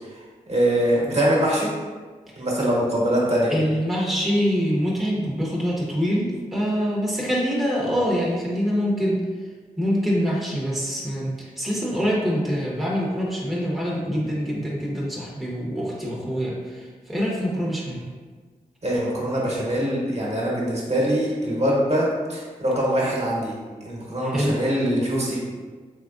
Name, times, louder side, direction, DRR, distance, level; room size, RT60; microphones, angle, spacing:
voice 1, 0.5-1.7 2.4-3.5 18.8-23.5 23.8-25.4, equal, 45° right, -4 dB, 1.2 m, -23 dB
voice 2, 3.5-9.2 9.8-18.1 24.2-24.5, equal, ahead, -5 dB, 0.9 m, -25 dB
3.6 x 3.2 x 2.5 m, 1.4 s
cardioid pair, 45°, 15 cm